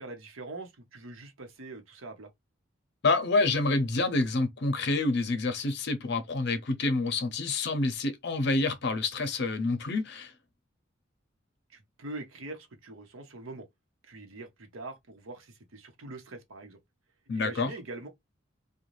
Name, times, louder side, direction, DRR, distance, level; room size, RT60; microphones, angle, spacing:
voice 1, 0.0-2.3 11.7-13.7 14.0-16.8 17.3-18.1, right 2 dB, 90° right, 0.9 m, -43 dB
voice 2, 3.0-10.3 17.3-17.7, left 3 dB, 55° left, 0.6 m, -28 dB
2.6 x 2.2 x 3.0 m
head